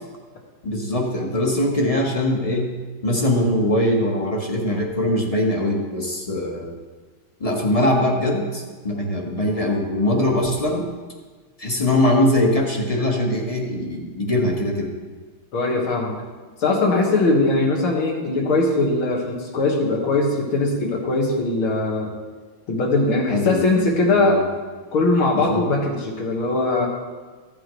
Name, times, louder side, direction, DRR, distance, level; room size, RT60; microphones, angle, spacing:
voice 1, 0.6-2.7 3.0-6.7 7.4-10.9 11.6-14.9 23.3-23.6 24.1-24.4 25.3-25.6, left 1 dB, 20° left, 0 dB, 1.1 m, -21 dB
voice 2, 15.5-16.1 16.6-22.1 22.7-24.4 24.9-26.9, left 2 dB, 70° left, 0 dB, 2.5 m, -20 dB
14.5 x 8.7 x 3.2 m, 1.4 s
omnidirectional pair, 2.4 m